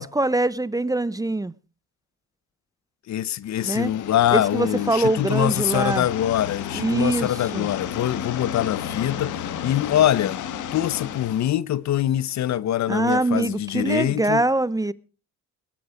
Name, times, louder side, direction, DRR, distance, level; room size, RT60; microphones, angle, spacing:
voice 1, 0.0-1.5 3.6-3.9 4.3-6.1 6.7-7.7 12.9-14.9, right 2 dB, 10° right, 0.7 m, -23 dB
voice 2, 3.1-10.4 10.7-14.4, left 12 dB, 65° left, 0.9 m, -24 dB
sound 1, 3.5-11.5, left 9 dB, 80° left, 1.8 m, -33 dB
21.0 x 12.0 x 5.1 m
cardioid pair, 90°, 30 cm